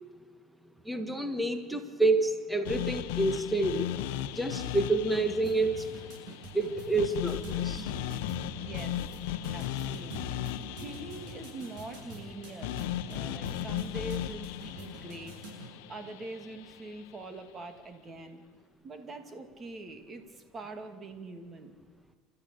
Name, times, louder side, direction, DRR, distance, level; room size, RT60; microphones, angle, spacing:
voice 1, 0.8-3.9 4.3-5.9 6.5-7.8, right 2 dB, ahead, 8 dB, 1.5 m, -28 dB
sound 1, 2.7-16.8, left 12 dB, 85° left, 0.9 m, -37 dB
sound 2, 4.5-15.7, right 3 dB, 70° right, 7.5 m, -46 dB
voice 2, 8.6-12.8 13.1-15.4 15.9-18.4 18.8-21.7, right 2 dB, 25° right, 6 dB, 2.4 m, -44 dB
29.0 x 13.5 x 8.4 m, 1.5 s
cardioid pair, 145°, 0 cm